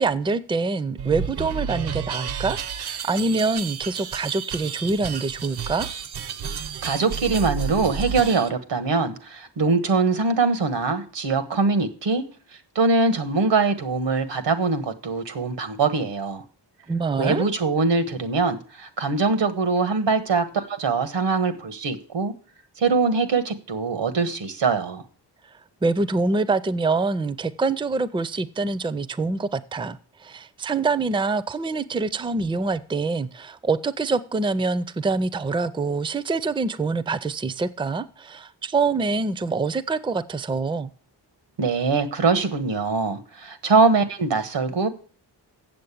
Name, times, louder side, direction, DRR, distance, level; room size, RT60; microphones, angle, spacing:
voice 1, 0.0-5.9 16.9-17.4 25.8-40.9, right 3 dB, 15° right, 0.4 m, -25 dB
sound 1, 1.0-8.5, right 7 dB, 70° right, 0.7 m, -31 dB
voice 2, 6.8-12.2 12.7-16.4 17.2-22.3 22.8-25.0 41.6-44.9, right 4 dB, 90° right, 1.5 m, -22 dB
7.8 x 7.6 x 8.4 m
wide cardioid pair, 135°, 41 cm